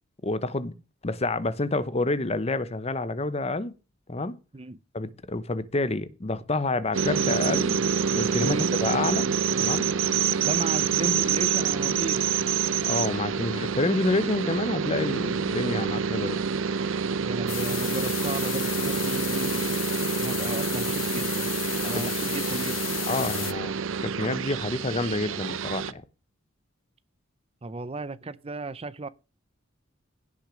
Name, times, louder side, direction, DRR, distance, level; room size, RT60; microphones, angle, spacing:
voice 1, 0.2-0.7 1.0-3.7 4.1-4.4 4.9-7.8 8.1-9.3 9.6-9.9 12.8-16.4 21.9-22.1 23.1-23.7 24.0-26.0, left 2 dB, 30° left, 0.9 m, -28 dB
sound 1, 6.9-25.9, right 6 dB, 80° right, 0.7 m, -27 dB
voice 2, 10.4-12.2 17.2-19.7 20.2-21.6 21.8-22.8 27.6-29.1, right 2 dB, 30° right, 0.6 m, -35 dB
sound 2, 17.5-23.5, left 16 dB, 70° left, 0.6 m, -33 dB
16.5 x 6.2 x 5.0 m
head